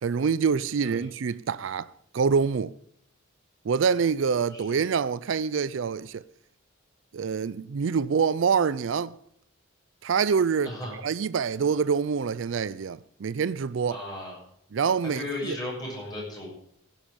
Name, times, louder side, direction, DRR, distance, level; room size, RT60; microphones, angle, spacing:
voice 1, 0.0-2.7 3.6-6.2 7.1-9.2 10.0-14.0 14.7-15.6, right 6 dB, 65° right, 0.4 m, -26 dB
voice 2, 10.6-11.0 13.9-14.4 15.0-16.5, left 1 dB, 20° left, 7.0 m, -35 dB
16.5 x 10.5 x 5.3 m
head